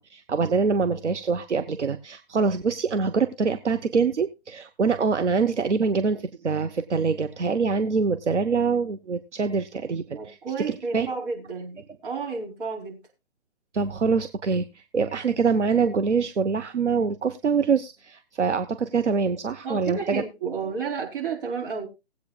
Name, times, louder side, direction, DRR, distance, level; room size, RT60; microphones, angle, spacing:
voice 1, 0.1-10.4 10.7-11.1 13.7-20.2, right 5 dB, 80° right, 9 dB, 0.9 m, -24 dB
voice 2, 10.1-13.0 19.6-21.9, right 5 dB, 45° right, -1 dB, 4.4 m, -31 dB
20.0 x 8.4 x 2.3 m, 0.25 s
figure-of-eight pair, 145°, 35 cm